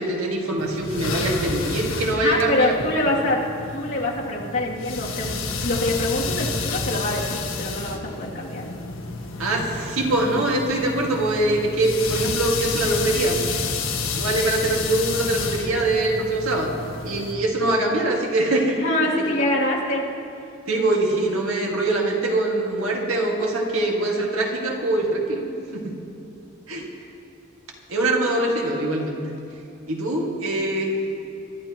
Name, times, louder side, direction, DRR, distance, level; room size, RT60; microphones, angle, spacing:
voice 1, 0.0-2.7 9.4-13.4 14.1-16.7 17.0-18.8 20.7-25.9 26.7-26.9 27.9-29.4 29.9-30.9, right 2 dB, 90° right, -1 dB, 2.0 m, -23 dB
sound 1, 0.6-17.3, left 4 dB, 80° left, 1.4 m, -30 dB
voice 2, 2.2-3.4 3.7-8.6 18.8-20.0, left 1 dB, 60° left, -6 dB, 2.7 m, -25 dB
25.0 x 12.5 x 3.0 m, 2.7 s
head